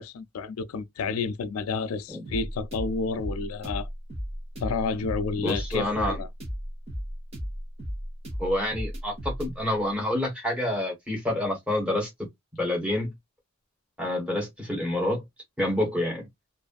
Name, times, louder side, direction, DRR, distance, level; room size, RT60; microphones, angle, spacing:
voice 1, 0.0-3.9 4.6-6.3, left 4 dB, 85° left, 0.3 m, -30 dB
sound 1, 2.2-9.5, equal, 30° right, 0.9 m, -34 dB
voice 2, 5.4-6.2 8.4-12.1 12.6-13.1 14.0-15.2 15.6-16.3, left 1 dB, 5° right, 1.3 m, -28 dB
2.5 x 2.4 x 2.3 m
head